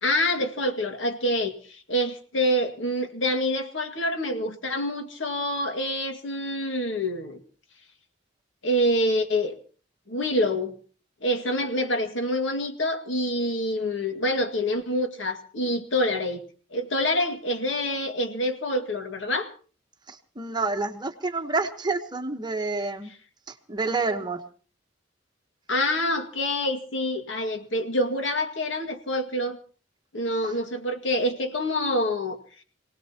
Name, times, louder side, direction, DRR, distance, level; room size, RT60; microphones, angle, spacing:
voice 1, 0.0-7.4 8.6-9.5 10.1-10.7 11.2-16.4 16.7-19.5 25.7-29.6 30.1-32.4, left 1 dB, 75° left, 6 dB, 2.1 m, -26 dB
voice 2, 20.1-23.1 23.5-24.4, right 3 dB, 25° right, 6 dB, 1.2 m, -28 dB
27.0 x 18.5 x 2.9 m, 0.39 s
head